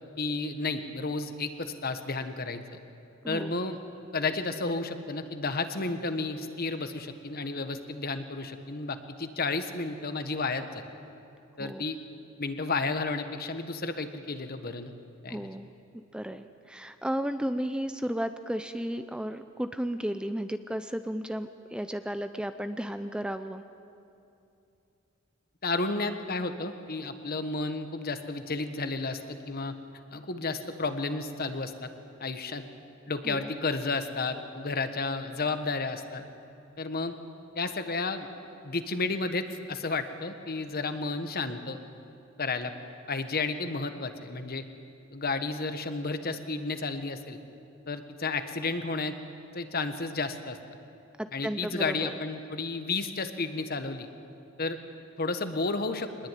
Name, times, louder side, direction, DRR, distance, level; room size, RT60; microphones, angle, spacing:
voice 1, 0.2-2.6 3.3-3.8 4.1-10.8 11.6-12.0 12.4-14.9 15.2-15.5 25.6-29.7 30.1-31.9 32.2-32.6 33.1-36.2 36.8-37.1 37.5-38.3 38.6-41.8 42.4-42.7 43.1-44.6 45.1-47.4 47.9-49.1 49.5-50.6 51.3-54.1 54.6-54.8 55.2-56.1, left 3 dB, 50° left, 8 dB, 1.5 m, -32 dB
voice 2, 15.3-15.7 16.1-23.6 33.2-33.4 51.2-52.1, equal, 5° right, 9 dB, 0.6 m, -33 dB
23.5 x 20.5 x 9.3 m, 2.7 s
head